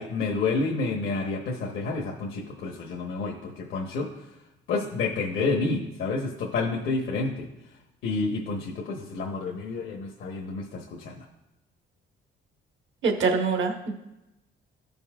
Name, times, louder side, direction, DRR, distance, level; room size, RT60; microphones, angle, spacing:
voice 1, 0.0-4.2 4.7-7.5 8.0-11.3, left 3 dB, 85° left, 0 dB, 1.1 m, -29 dB
voice 2, 13.0-13.9, right 4 dB, 70° right, 2 dB, 1.3 m, -24 dB
14.0 x 5.4 x 2.4 m, 0.95 s
cardioid pair, 90°, 20 cm